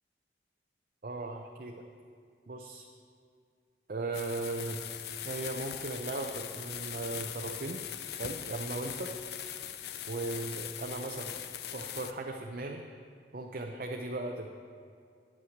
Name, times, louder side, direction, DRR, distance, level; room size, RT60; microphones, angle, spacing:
voice 1, 1.0-1.8 2.5-2.9 3.9-4.8 5.2-7.8 8.2-9.1 10.1-11.4 11.7-12.8 13.3-14.7, right 2 dB, 50° right, 2 dB, 0.5 m, -37 dB
sound 1, 4.1-12.1, left 10 dB, 65° left, 0.5 m, -41 dB
9.5 x 5.8 x 7.2 m, 2.3 s
head